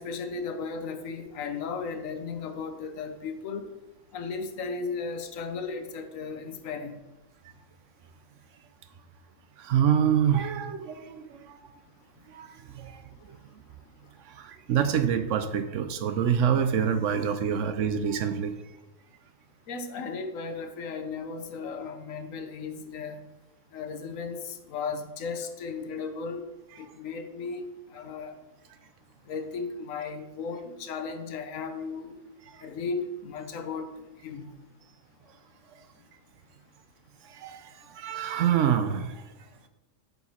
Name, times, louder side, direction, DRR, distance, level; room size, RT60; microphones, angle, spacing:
voice 1, 0.0-3.7 4.1-6.9 19.7-23.2 23.7-26.4 26.8-28.3 29.3-32.2 32.6-33.9 34.2-34.5, left 4 dB, 75° left, 8 dB, 1.1 m, -35 dB
voice 2, 9.6-11.7 12.3-13.0 13.3-13.4 14.3-18.5 32.5-32.7 37.2-39.2, right 8 dB, 70° right, 9 dB, 0.9 m, -26 dB
8.0 x 4.7 x 4.2 m, 1.0 s
omnidirectional pair, 1.4 m